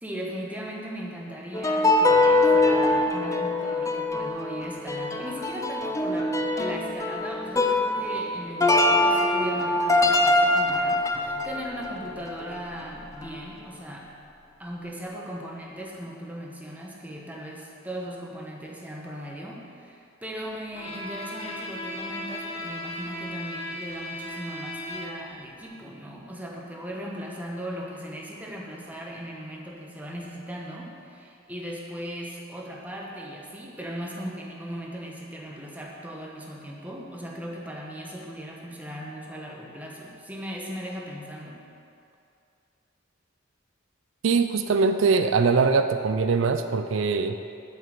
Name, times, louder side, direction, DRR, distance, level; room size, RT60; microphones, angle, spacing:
voice 1, 0.0-14.1 14.6-41.6, equal, 10° right, -2 dB, 1.1 m, -38 dB
sound 1, 1.5-12.9 13.1-13.3, left 2 dB, 15° left, 0.4 m, -23 dB
Bowed string instrument, 20.7-25.4, left 1 dB, 30° left, 1.0 m, -36 dB
voice 2, 44.2-47.4, right 4 dB, 80° right, 8 dB, 0.4 m, -22 dB
7.6 x 5.6 x 7.6 m, 2.5 s
head